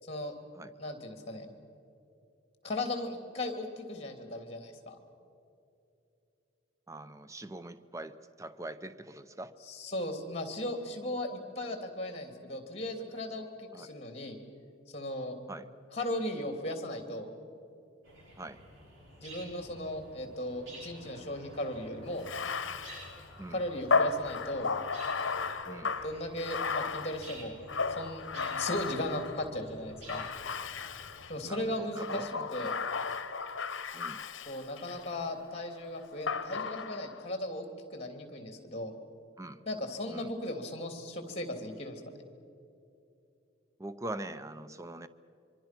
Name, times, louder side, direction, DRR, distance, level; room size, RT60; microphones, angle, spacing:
voice 1, 0.0-0.3 0.8-1.5 2.6-5.0 9.7-14.4 14.9-15.4 15.9-17.3 19.2-22.3 23.5-24.7 26.0-27.6 27.9-30.3 31.3-32.8 34.5-38.9 39.7-42.0, left 1 dB, 30° left, 6 dB, 2.9 m, -37 dB
voice 2, 6.9-9.5 13.7-13.9 15.5-15.7 18.4-18.6 23.4-23.6 25.7-26.0 31.4-32.7 33.9-34.2 39.4-39.6 40.1-40.3 43.8-45.1, right 1 dB, 15° right, 12 dB, 0.6 m, -43 dB
sound 1, 18.0-31.3, right 1 dB, 85° right, 6.6 m, -52 dB
Bathtub (filling or washing), 22.2-29.5 30.1-31.4 31.9-35.1 36.3-37.2, left 4 dB, 75° left, 0.9 m, -34 dB
25.0 x 24.0 x 6.0 m, 2.6 s
head